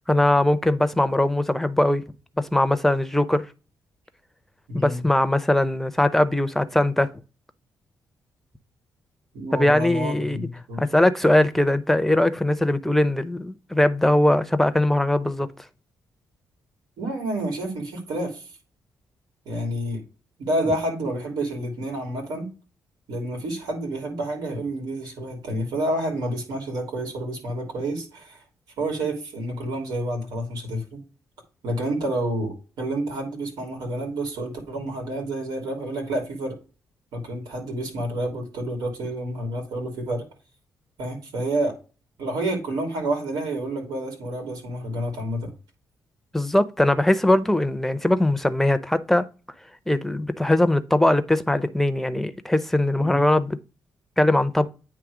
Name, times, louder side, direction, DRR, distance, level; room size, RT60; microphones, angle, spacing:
voice 1, 0.1-2.0 2.4-3.4 4.7-7.1 9.5-10.5 10.8-15.5 46.3-49.3 49.9-53.6 54.2-54.7, left 1 dB, 5° left, 0.7 m, -21 dB
voice 2, 4.7-5.1 9.3-10.8 17.0-18.4 19.4-20.0 20.4-22.5 23.1-28.4 28.8-31.0 31.6-36.6 37.1-40.2 41.0-41.7 42.2-45.5 53.0-53.2, right 1 dB, 90° right, 2.9 m, -29 dB
9.2 x 3.3 x 4.9 m
cardioid pair, 110°, 7 cm